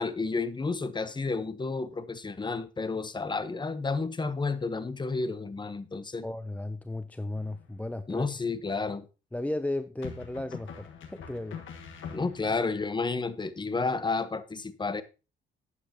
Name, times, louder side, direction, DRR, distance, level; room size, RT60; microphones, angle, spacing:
voice 1, 0.0-6.2 8.1-9.1 12.1-15.0, left 4 dB, 20° left, 0.9 m, -31 dB
voice 2, 6.2-8.3 9.3-11.6, left 1 dB, 5° left, 0.5 m, -35 dB
sound 1, 7.4-8.0 10.0-12.7, left 7 dB, 75° left, 1.6 m, -44 dB
11.5 x 8.6 x 2.9 m
cardioid pair, 90°, 20 cm